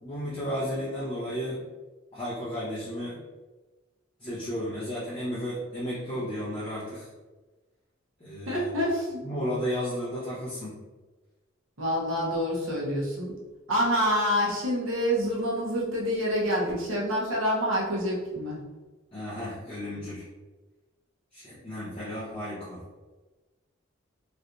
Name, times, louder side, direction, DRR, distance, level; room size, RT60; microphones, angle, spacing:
voice 1, 0.0-1.6 2.1-3.2 4.2-7.1 8.2-8.7 9.2-10.8 19.1-20.2 21.3-22.8, equal, 30° left, -12 dB, 0.9 m, -33 dB
voice 2, 8.5-9.2 11.8-13.4 13.7-18.6, equal, 85° right, -4 dB, 1.0 m, -27 dB
3.3 x 2.8 x 2.6 m, 1.2 s
head